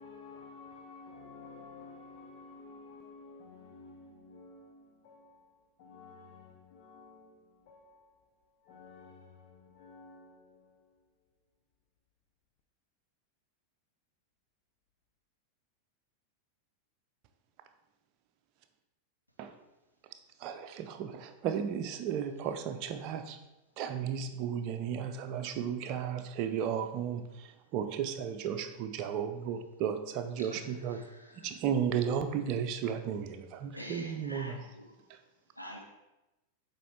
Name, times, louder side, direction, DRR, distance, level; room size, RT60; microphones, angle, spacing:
voice 1, 0.0-11.1, left 4 dB, 45° left, 0.7 m, -53 dB
voice 2, 20.4-23.4 23.8-31.0 31.4-34.6 35.1-35.2, right 8 dB, 40° right, 0.6 m, -34 dB
voice 3, 30.4-31.5 33.7-35.1 35.5-35.8, equal, 90° left, 1.1 m, -47 dB
7.6 x 4.5 x 3.4 m
figure-of-eight pair, 90°, 0 cm